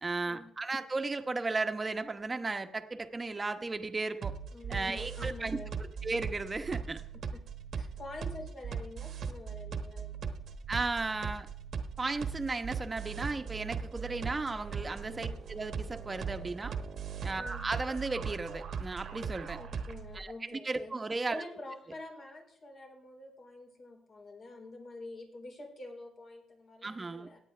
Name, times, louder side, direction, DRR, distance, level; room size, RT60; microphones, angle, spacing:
voice 1, 0.0-4.3 4.7-7.0 10.7-11.5 12.0-16.8 17.2-19.6 20.1-21.4 26.8-27.3, right 3 dB, 25° right, 8 dB, 1.0 m, -35 dB
sound 1, 4.2-20.2, right 6 dB, 60° right, 1.1 m, -39 dB
voice 2, 4.5-5.7 7.3-7.4 7.8-10.4 15.1-15.4 17.4-17.7 19.5-21.0 21.3-27.4, left 2 dB, 55° left, -1 dB, 4.2 m, -47 dB
17.5 x 9.3 x 3.4 m, 0.67 s
cardioid pair, 95°, 0 cm